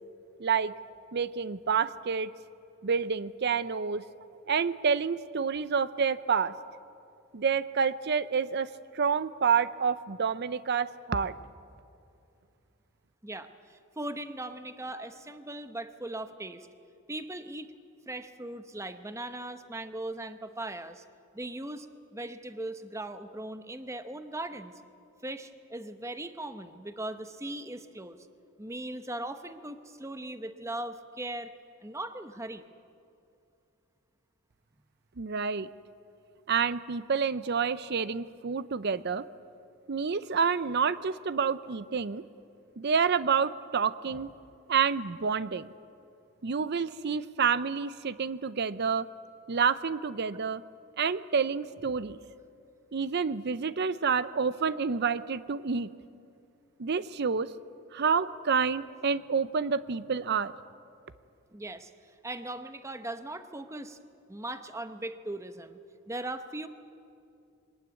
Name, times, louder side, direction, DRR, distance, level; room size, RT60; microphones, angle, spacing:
voice 1, 0.4-0.7 1.1-2.3 2.8-4.0 4.5-6.5 7.3-8.7 8.9-11.4 35.2-35.7 36.5-39.2 39.9-42.2 42.8-44.3 44.7-45.7 46.4-49.1 49.5-50.6 51.0-52.2 52.9-55.9 56.8-57.5 57.9-60.5, right 6 dB, 50° right, 15 dB, 0.5 m, -28 dB
voice 2, 13.2-16.7 17.1-17.7 18.1-21.0 21.3-21.9 22.1-24.7 25.2-28.2 28.6-31.5 31.8-32.6 61.5-61.9 62.2-64.0 64.3-65.8 66.1-66.7, right 1 dB, 15° right, 10 dB, 0.8 m, -39 dB
22.0 x 19.0 x 9.5 m, 2.6 s
head